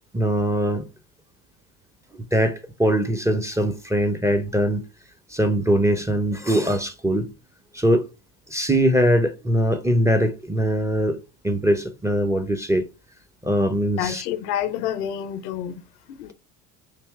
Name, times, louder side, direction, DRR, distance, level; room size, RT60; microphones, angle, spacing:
voice 1, 0.1-0.9 2.3-4.8 5.3-7.3 7.7-8.1 8.5-11.2 11.4-12.8 13.4-14.2, equal, 5° right, 0.5 m, -21 dB
voice 2, 14.0-15.8 16.1-16.3, left 10 dB, 80° left, 0.6 m, -28 dB
3.3 x 2.8 x 4.5 m
hypercardioid pair, 65°, 46 cm